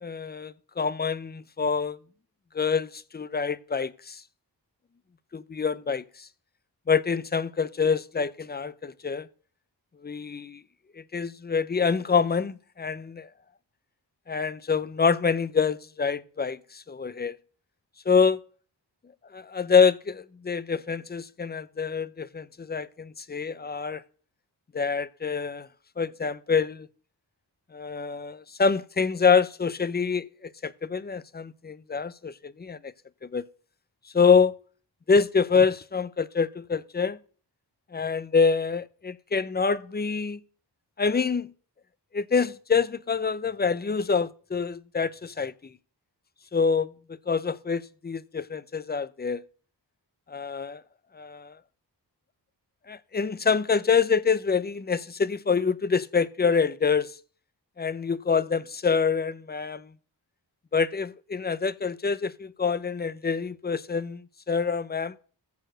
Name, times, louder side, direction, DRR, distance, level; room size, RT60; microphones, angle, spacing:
voice 1, 0.0-2.0 2.5-4.2 5.3-6.3 6.9-9.3 10.0-10.6 11.1-13.3 14.3-17.4 18.1-18.4 19.3-24.0 24.7-25.7 26.0-26.9 27.7-32.9 33.2-33.5 34.1-34.6 35.1-37.2 37.9-40.4 41.0-41.5 42.1-45.5 46.5-46.9 47.3-49.4 50.3-50.8 51.1-51.5 52.9-57.2 57.8-59.9 60.7-65.1, left 5 dB, 25° left, 0.4 m, -26 dB
13.5 x 4.6 x 7.7 m
wide cardioid pair, 100°, 42 cm